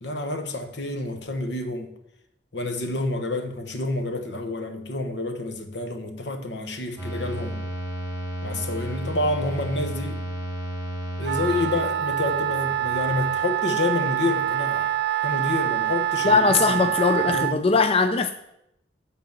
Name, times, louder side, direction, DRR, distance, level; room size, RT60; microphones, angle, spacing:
voice 1, 0.0-1.9 2.5-7.6 8.4-10.2 11.2-14.8 15.2-17.6, left 2 dB, 75° left, 1.1 m, -29 dB
sound 1, 7.0-13.4, right 1 dB, 15° left, 2.3 m, -33 dB
Wind instrument woodwind instrument, 11.2-17.6, right 11 dB, 65° right, 0.3 m, -25 dB
voice 2, 16.2-18.3, left 4 dB, 35° left, 0.4 m, -20 dB
9.5 x 4.0 x 7.1 m
head